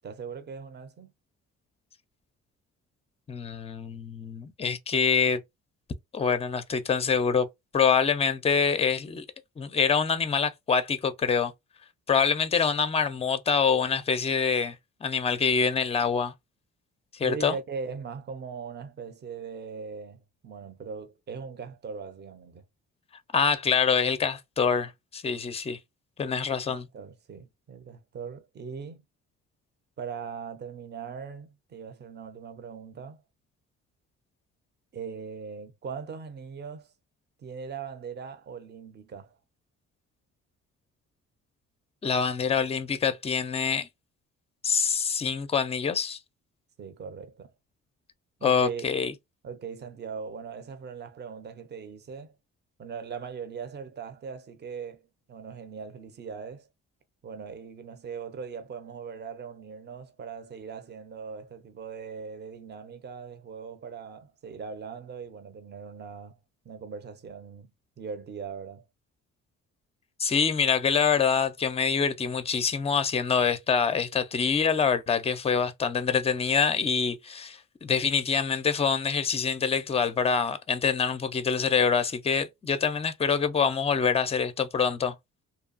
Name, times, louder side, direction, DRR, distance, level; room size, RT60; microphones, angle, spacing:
voice 1, 0.0-1.1 17.2-22.6 26.5-29.0 30.0-33.2 34.9-36.9 37.4-39.4 46.8-47.5 48.4-48.9 49.4-52.3 52.8-55.0 55.3-56.7 57.2-66.4 66.6-67.7 68.0-68.8, right 6 dB, 35° right, 0.6 m, -40 dB
voice 2, 3.3-5.4 6.1-7.5 7.7-9.2 9.6-11.5 12.1-14.8 15.0-16.3 17.1-17.6 23.3-25.8 26.2-26.9 42.0-43.9 44.6-46.2 48.4-49.1 70.2-85.1, left 6 dB, 20° left, 0.5 m, -25 dB
2.8 x 2.3 x 2.4 m
cardioid pair, 90°, 30 cm